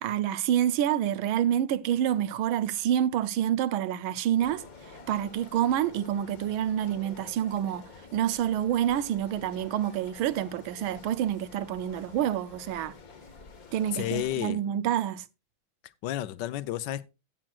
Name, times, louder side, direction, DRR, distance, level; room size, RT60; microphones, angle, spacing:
voice 1, 0.0-12.9 13.7-15.2, right 11 dB, 80° right, 1.5 m, -28 dB
sound 1, 4.4-14.3, left 4 dB, 45° left, 1.6 m, -49 dB
voice 2, 13.9-14.6 16.0-17.1, left 13 dB, 70° left, 1.1 m, -31 dB
16.0 x 7.6 x 2.4 m
omnidirectional pair, 2.3 m